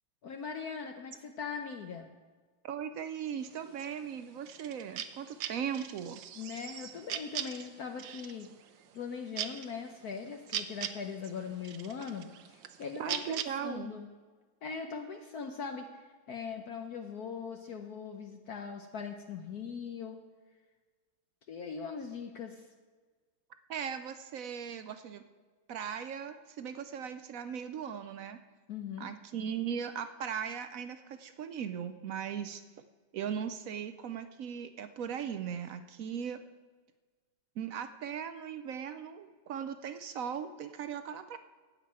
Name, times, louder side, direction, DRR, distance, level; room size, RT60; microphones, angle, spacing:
voice 1, 0.2-2.1 6.3-8.5 8.9-14.1 14.6-20.2 21.5-22.7 28.7-29.1, left 6 dB, 60° left, 4 dB, 1.2 m, -40 dB
voice 2, 2.6-6.2 13.0-13.9 23.7-25.2 25.7-28.4 29.0-32.6 33.1-36.4 37.6-41.4, right 8 dB, 70° right, 10 dB, 0.8 m, -38 dB
sound 1, 3.4-13.4, right 10 dB, 85° right, 1.4 m, -41 dB
15.0 x 5.2 x 8.8 m, 1.4 s
omnidirectional pair, 2.0 m